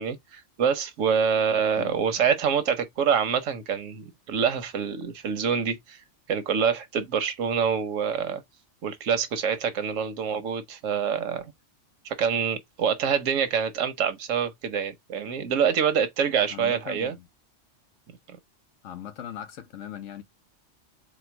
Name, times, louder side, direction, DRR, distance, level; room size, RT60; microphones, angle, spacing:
voice 1, 0.0-6.0 6.3-8.4 8.8-11.5 12.0-17.2 18.3-18.4, right 7 dB, 85° right, 1.2 m, -26 dB
voice 2, 16.5-17.3 18.8-20.2, left 10 dB, 85° left, 1.1 m, -39 dB
4.4 x 2.2 x 4.4 m
omnidirectional pair, 1.3 m